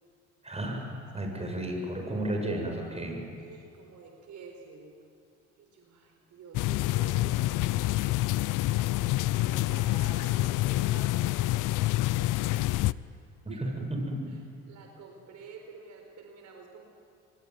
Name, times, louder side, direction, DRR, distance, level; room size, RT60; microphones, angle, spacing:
voice 1, 0.4-0.9 1.1-3.3 13.4-14.2, right 1 dB, 20° right, 2 dB, 7.3 m, -33 dB
voice 2, 3.4-4.9 5.6-8.6 9.3-12.8 13.5-13.7 14.3-14.4 14.7-16.9, right 4 dB, 65° right, 2 dB, 4.4 m, -49 dB
sound 1, 6.5-12.9, left 17 dB, 75° left, 0.6 m, -27 dB
26.0 x 21.5 x 9.5 m, 2.4 s
cardioid pair, 85°, 31 cm